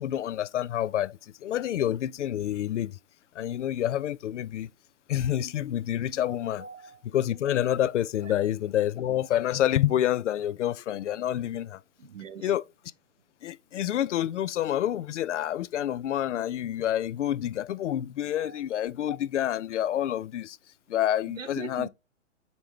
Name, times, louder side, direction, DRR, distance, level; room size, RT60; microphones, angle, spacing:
voice 1, 0.0-3.0 3.3-4.7 5.1-6.6 7.1-11.8 12.4-12.6 13.4-20.6 20.9-21.9, left 11 dB, 70° left, 0.5 m, -28 dB
voice 2, 6.6-7.0 8.2-8.3 12.0-12.5 18.4-18.6 21.4-21.9, right 6 dB, 90° right, 1.0 m, -41 dB
5.7 x 5.3 x 3.1 m
hypercardioid pair, 130°, 37 cm